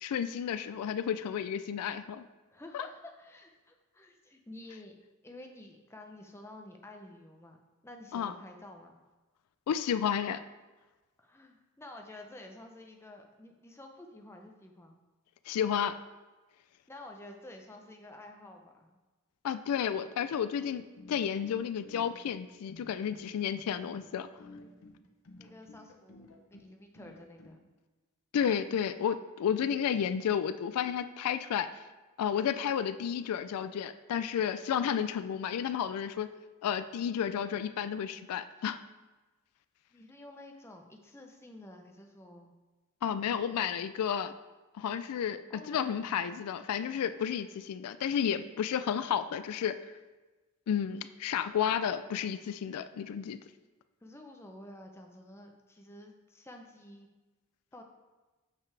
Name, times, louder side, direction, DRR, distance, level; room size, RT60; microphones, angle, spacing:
voice 1, 0.0-2.2 2.7-2.9 8.1-8.3 9.7-10.4 15.5-16.0 19.4-20.8 21.1-24.3 28.3-31.7 32.2-36.3 36.6-38.8 43.0-44.3 44.8-49.8 50.7-53.4, left 8 dB, 85° left, 12 dB, 0.3 m, -32 dB
voice 2, 2.5-5.0 5.2-7.6 7.8-9.0 11.2-15.0 16.9-19.0 25.4-27.6 39.9-42.5 45.5-46.1 54.0-57.1 57.7-57.8, left 1 dB, 10° left, 3 dB, 0.6 m, -50 dB
sound 1, 20.7-27.6, left 2 dB, 65° left, 0.8 m, -53 dB
6.7 x 5.8 x 3.3 m, 1.2 s
head